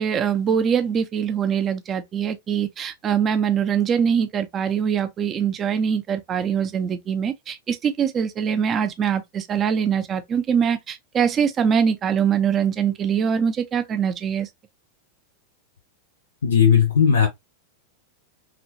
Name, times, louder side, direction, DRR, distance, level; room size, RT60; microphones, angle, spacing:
voice 1, 0.0-14.5, right 7 dB, 25° right, 0.5 m, -23 dB
voice 2, 16.4-17.3, left 7 dB, 70° left, 0.5 m, -16 dB
3.0 x 2.5 x 2.6 m
figure-of-eight pair, 90°, 0 cm